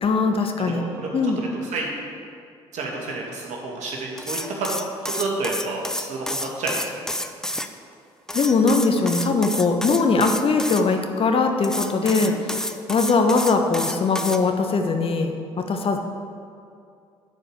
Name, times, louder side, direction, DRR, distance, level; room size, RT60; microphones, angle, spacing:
voice 1, 0.0-0.8 1.1-1.4 8.3-12.6 12.9-16.0, left 4 dB, 40° left, 4 dB, 1.1 m, -21 dB
voice 2, 0.6-1.9 2.7-4.7 5.0-7.1 12.0-12.3, right 3 dB, 60° right, -1 dB, 2.2 m, -30 dB
sound 1, 4.2-7.7 8.3-10.8 11.6-14.4, left 1 dB, 5° left, 0.7 m, -29 dB
9.9 x 5.2 x 8.0 m, 2.4 s
hypercardioid pair, 50°, 14 cm